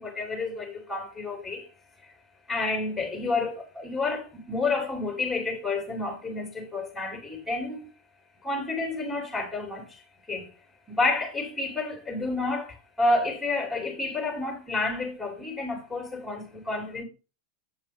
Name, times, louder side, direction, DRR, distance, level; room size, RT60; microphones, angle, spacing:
voice 1, 0.0-1.7 2.5-7.9 8.4-10.0 10.3-10.5 10.9-17.0, left 3 dB, 5° left, 2.7 m, -30 dB
7.7 x 5.1 x 3.5 m
hypercardioid pair, 110°, 0 cm